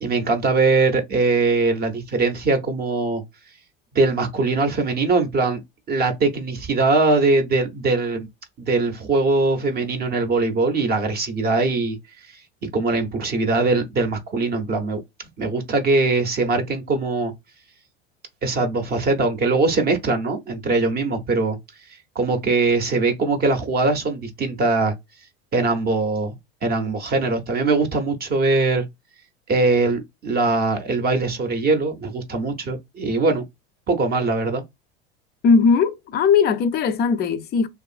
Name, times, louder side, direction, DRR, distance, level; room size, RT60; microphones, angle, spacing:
voice 1, 0.0-3.2 3.9-5.6 5.9-8.3 8.6-12.0 12.3-12.4 12.7-15.0 15.4-17.3 18.4-21.6 22.2-24.9 25.5-26.4 26.6-28.9 29.5-33.4 33.9-34.6, right 3 dB, 30° right, 0.6 m, -21 dB
voice 2, 35.4-37.7, left 5 dB, 35° left, 0.4 m, -18 dB
2.6 x 2.4 x 2.4 m
hypercardioid pair, 95°, 31 cm